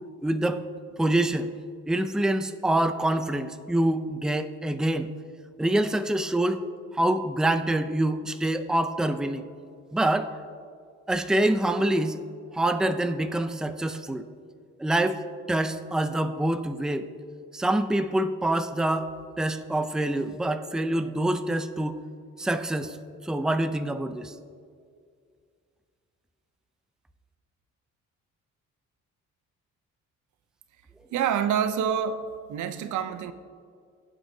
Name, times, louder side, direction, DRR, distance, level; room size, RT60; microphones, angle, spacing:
voice 1, 0.2-0.7 1.0-1.5 1.9-5.1 5.6-6.6 6.9-9.5 9.9-10.4 11.1-12.2 12.5-14.2 14.8-15.2 15.5-17.1 17.5-19.1 19.4-22.0 22.4-23.0 23.2-24.3, right 1 dB, ahead, 9 dB, 0.5 m, -26 dB
voice 2, 31.1-33.3, right 8 dB, 75° right, 11 dB, 0.7 m, -27 dB
19.0 x 7.6 x 2.8 m, 2.2 s
cardioid pair, 90°, 30 cm